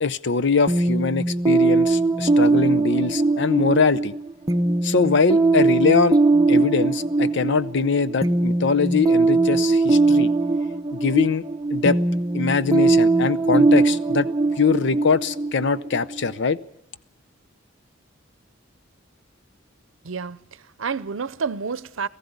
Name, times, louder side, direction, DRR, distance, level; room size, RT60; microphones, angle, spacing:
voice 1, 0.0-4.1 4.8-6.2 6.5-10.3 10.9-11.4 11.7-12.0 12.3-14.3 14.6-16.6, left 5 dB, 65° left, 0.7 m, -22 dB
sound 1, 0.7-16.3, right 3 dB, 20° right, 0.7 m, -20 dB
voice 2, 20.0-22.1, right 5 dB, 80° right, 0.7 m, -29 dB
18.5 x 15.0 x 9.5 m
head